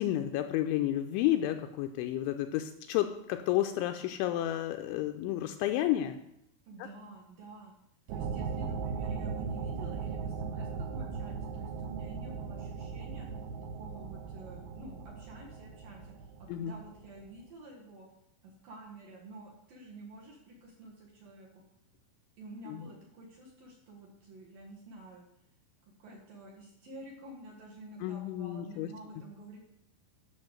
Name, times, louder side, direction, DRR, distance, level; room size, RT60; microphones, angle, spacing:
voice 1, 0.0-6.2 16.5-16.7 22.7-22.9 28.0-28.9, left 13 dB, 85° left, 7 dB, 2.8 m, -31 dB
voice 2, 6.7-7.7 8.1-13.3 13.7-16.1 16.4-18.1 18.4-21.6 22.4-25.3 26.0-29.6, right 2 dB, 60° right, -2 dB, 2.5 m, -49 dB
sound 1, 8.1-17.2, right 5 dB, 75° right, 2.6 m, -38 dB
11.0 x 6.0 x 7.8 m, 0.78 s
omnidirectional pair, 5.8 m